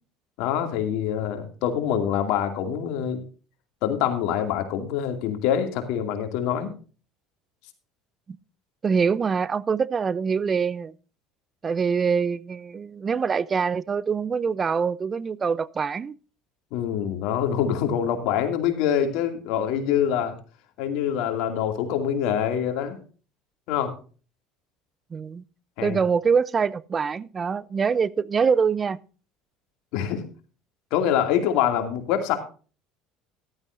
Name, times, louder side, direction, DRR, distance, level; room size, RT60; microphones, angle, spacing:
voice 1, 0.4-3.2 3.8-6.7 16.7-20.4 20.8-23.0 23.7-23.9 25.8-26.0 29.9-30.2 30.9-32.4, left 9 dB, 70° left, 2.4 m, -25 dB
voice 2, 8.8-10.9 11.6-16.1 25.1-25.4 25.8-29.0, right 6 dB, 30° right, 0.6 m, -24 dB
14.0 x 12.0 x 2.6 m
hypercardioid pair, 80°, 0 cm